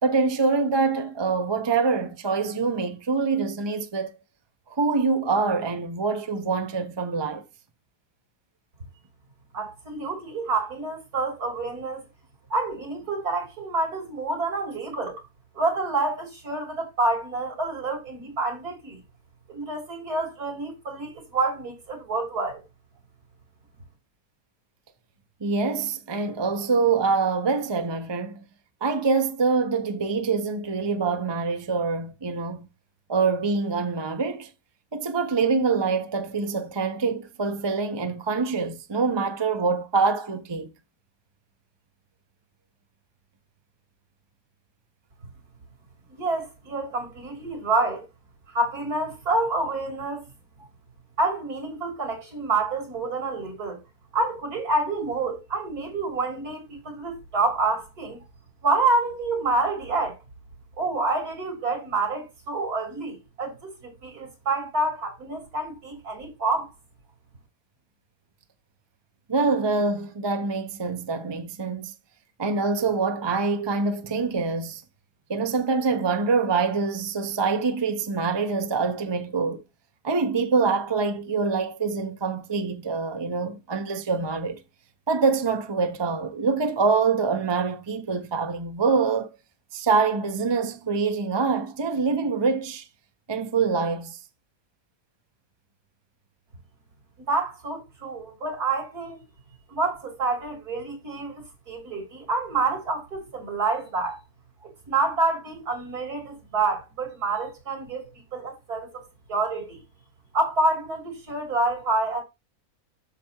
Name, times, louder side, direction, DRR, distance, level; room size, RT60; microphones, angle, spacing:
voice 1, 0.0-4.1 4.7-7.4 25.4-28.4 28.8-32.7 33.1-34.5 34.9-40.7 69.3-71.9 72.4-74.8 75.3-79.6 80.0-84.6 85.1-89.4 89.7-92.9 93.3-94.2, right 4 dB, 20° right, 0.8 m, -25 dB
voice 2, 9.5-12.1 12.5-15.2 15.6-19.0 19.5-22.6 46.1-48.1 48.5-50.2 51.2-53.8 54.1-58.2 58.6-60.2 60.8-66.7 97.2-99.2 99.7-104.2 104.9-109.0 109.3-109.8 110.3-112.2, right 3 dB, 80° right, 3.9 m, -28 dB
8.3 x 6.9 x 2.9 m
omnidirectional pair, 1.6 m